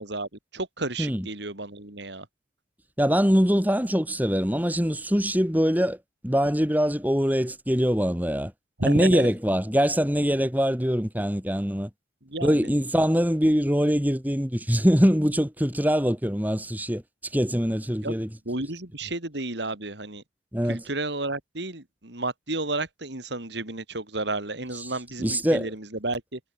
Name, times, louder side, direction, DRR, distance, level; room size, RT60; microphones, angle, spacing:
voice 1, 0.0-2.3 8.8-9.3 12.2-12.7 18.0-18.1 18.5-20.2 20.7-26.4, right 2 dB, 65° right, 3.6 m, -32 dB
voice 2, 3.0-6.0 6.2-8.5 8.8-11.9 12.4-17.0 17.3-18.3 20.5-20.8 25.2-25.7, equal, 10° right, 3.7 m, -23 dB
head